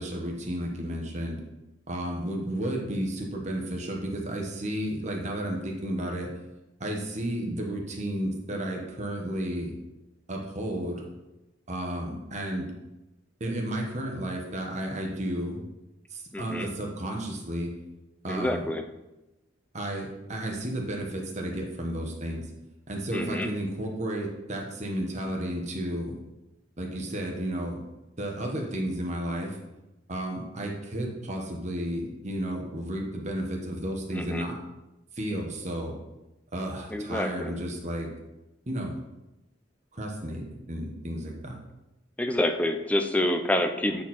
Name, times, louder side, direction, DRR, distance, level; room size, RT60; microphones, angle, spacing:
voice 1, 0.0-1.4 1.9-6.3 6.8-9.7 10.3-11.0 11.7-12.7 13.4-15.6 16.1-17.7 18.2-18.6 19.7-22.4 22.9-26.2 26.8-27.8 28.2-29.6 30.1-34.6 35.1-36.0 36.5-38.1 38.7-39.0 39.9-41.6, right 1 dB, 40° right, 1 dB, 1.3 m, -32 dB
voice 2, 16.3-16.7 18.3-18.8 23.1-23.5 34.1-34.5 36.9-37.6 42.2-44.0, left 1 dB, 10° left, 6 dB, 0.5 m, -27 dB
8.4 x 4.4 x 4.3 m, 0.98 s
head